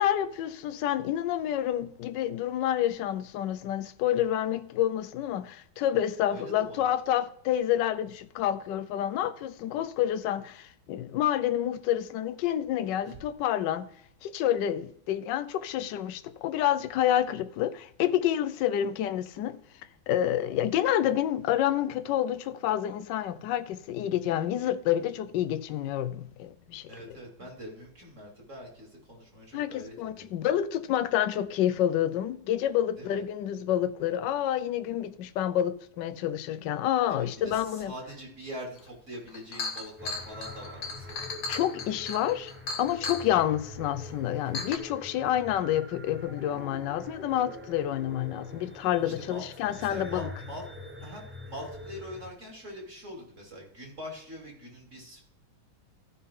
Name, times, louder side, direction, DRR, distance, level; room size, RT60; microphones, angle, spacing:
voice 1, 0.0-13.9 14.2-19.6 20.1-26.9 29.5-37.9 41.5-42.5 42.8-50.3, left 11 dB, 70° left, 1.2 m, -28 dB
voice 2, 6.2-6.9 13.0-13.2 26.9-30.3 33.0-33.2 37.1-41.3 49.0-49.4 49.8-50.6 51.0-55.2, equal, 35° right, 3.4 m, -43 dB
Chink clink, 38.9-39.0 39.3-43.3 44.0-44.1 44.5-44.8, left 3 dB, 50° left, 1.2 m, -36 dB
sound 1, 40.0-52.3, left 1 dB, 15° right, 0.4 m, -44 dB
14.5 x 5.6 x 3.7 m
omnidirectional pair, 2.3 m